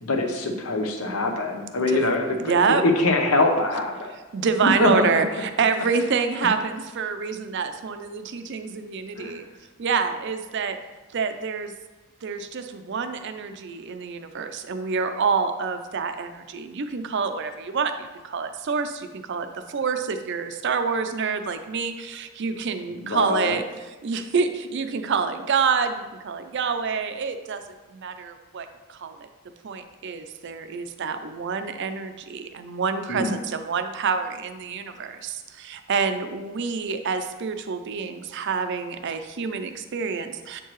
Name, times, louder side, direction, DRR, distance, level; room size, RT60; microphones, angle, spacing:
voice 1, 0.0-4.1 4.6-5.0 9.2-9.4 23.0-23.6 33.1-33.3, left 2 dB, 75° left, 3 dB, 0.9 m, -23 dB
voice 2, 2.4-2.8 4.3-9.5 9.8-10.8 11.1-11.7 12.2-27.6 27.9-29.3 29.6-40.6, right 5 dB, 55° right, 8 dB, 0.4 m, -27 dB
7.5 x 4.5 x 3.1 m, 1.2 s
head